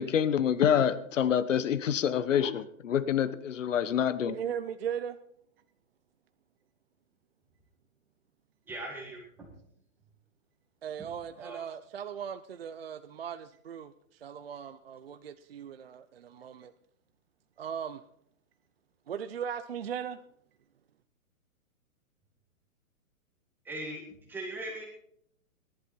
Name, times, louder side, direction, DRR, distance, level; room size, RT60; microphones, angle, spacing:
voice 1, 0.0-4.3, left 9 dB, 60° left, 15 dB, 1.1 m, -27 dB
voice 2, 4.3-5.2 10.8-16.7 17.6-18.0 19.1-20.2, right 8 dB, 45° right, 11 dB, 0.5 m, -38 dB
voice 3, 8.7-9.5 11.0-11.1 11.4-11.6 23.7-24.0 24.3-24.9, right 1 dB, 5° right, 0 dB, 1.7 m, -39 dB
17.5 x 11.5 x 4.4 m, 0.70 s
hypercardioid pair, 175°, 43 cm